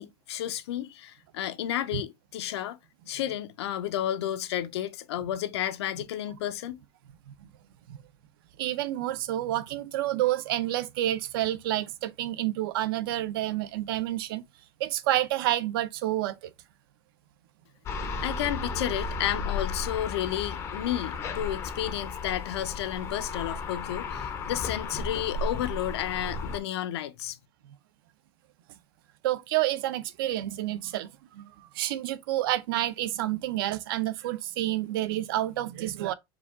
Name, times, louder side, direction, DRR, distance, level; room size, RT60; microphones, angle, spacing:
voice 1, 0.0-2.8 3.1-6.8 18.0-27.4, left 12 dB, 80° left, 0.6 m, -32 dB
voice 2, 8.6-14.4 14.8-16.5 29.2-36.1, right 14 dB, 55° right, 0.5 m, -29 dB
sound 1, 17.9-26.6, left 4 dB, 20° left, 0.5 m, -34 dB
4.8 x 2.3 x 3.6 m
supercardioid pair, 175°, 14 cm